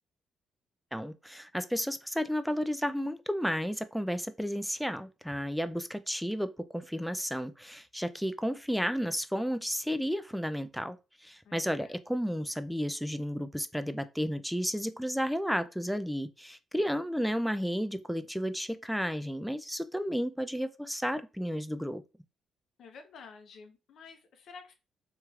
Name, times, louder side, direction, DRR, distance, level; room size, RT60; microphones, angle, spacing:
voice 1, 0.9-22.0, equal, ahead, 0.3 m, -32 dB
voice 2, 11.4-12.0 22.8-24.7, left 5 dB, 70° left, 0.6 m, -51 dB
3.0 x 2.9 x 2.4 m
cardioid pair, 90°, 0 cm